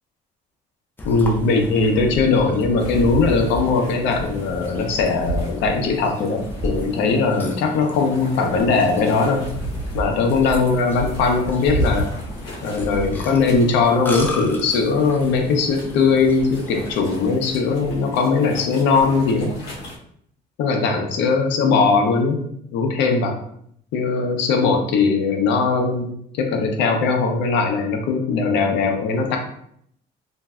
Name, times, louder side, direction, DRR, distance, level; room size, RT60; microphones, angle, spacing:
voice 1, 1.0-9.5 9.9-12.1 12.6-19.5 20.6-22.4 22.7-23.4 23.9-26.1 26.4-29.4, left 4 dB, 85° left, 3 dB, 0.6 m, -20 dB
Burping eructation, 1.0-16.9, left 1 dB, 10° left, 0.3 m, -34 dB
sound 1, 2.8-20.0, equal, 60° left, 1.0 m, -32 dB
3.1 x 2.6 x 2.3 m, 0.69 s
cardioid pair, 160°, 18 cm